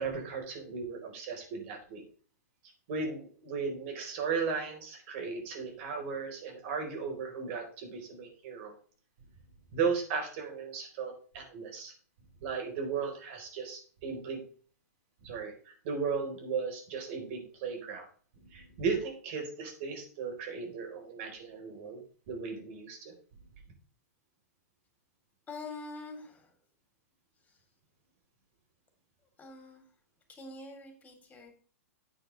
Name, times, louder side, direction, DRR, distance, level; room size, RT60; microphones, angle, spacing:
voice 1, 0.0-2.0 2.9-8.7 9.7-11.9 12.4-14.4 15.2-18.1 18.5-22.0 22.3-23.1, right 5 dB, 50° right, 3 dB, 4.5 m, -36 dB
voice 2, 25.5-26.5 27.5-27.6 29.4-29.8 30.3-31.5, left 3 dB, 15° left, 5 dB, 3.7 m, -45 dB
9.9 x 9.1 x 3.4 m, 0.42 s
figure-of-eight pair, 105°, 9 cm